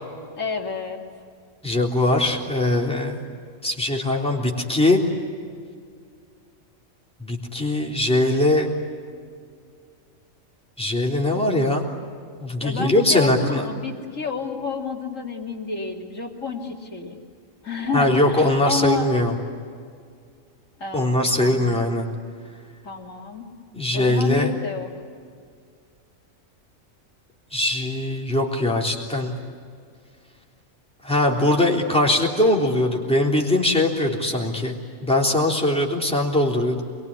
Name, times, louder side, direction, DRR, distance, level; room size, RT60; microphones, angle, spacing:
voice 1, 0.4-1.0 12.6-17.2 17.6-19.1 20.8-21.8 22.8-23.5 23.9-24.9, left 4 dB, 65° left, 2 dB, 3.3 m, -29 dB
voice 2, 1.6-3.2 3.6-5.0 7.2-8.7 10.8-11.8 12.4-13.7 17.9-19.3 20.9-22.1 23.7-24.5 27.5-29.3 31.0-36.8, left 1 dB, 5° left, -1 dB, 3.5 m, -21 dB
27.0 x 22.5 x 9.8 m, 2.2 s
omnidirectional pair, 1.4 m